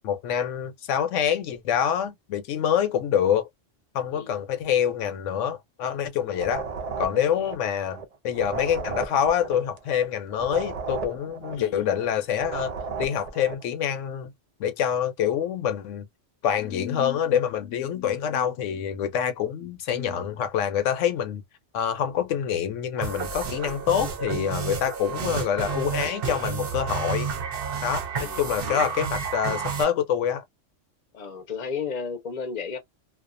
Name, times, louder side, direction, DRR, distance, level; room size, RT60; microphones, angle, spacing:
voice 1, 0.0-3.5 3.9-6.6 7.0-12.7 13.0-14.3 14.6-16.1 16.4-21.4 21.7-27.3 27.8-30.4, left 9 dB, 75° left, 0.9 m, -26 dB
voice 2, 4.1-4.4 6.3-6.5 7.3-7.5 11.5-11.9 28.1-28.9 31.1-32.8, left 5 dB, 45° left, 0.6 m, -35 dB
sound 1, 6.3-13.7, right 5 dB, 75° right, 0.3 m, -35 dB
sound 2, 23.0-29.8, right 6 dB, 55° right, 0.8 m, -30 dB
2.3 x 2.2 x 2.4 m
omnidirectional pair, 1.3 m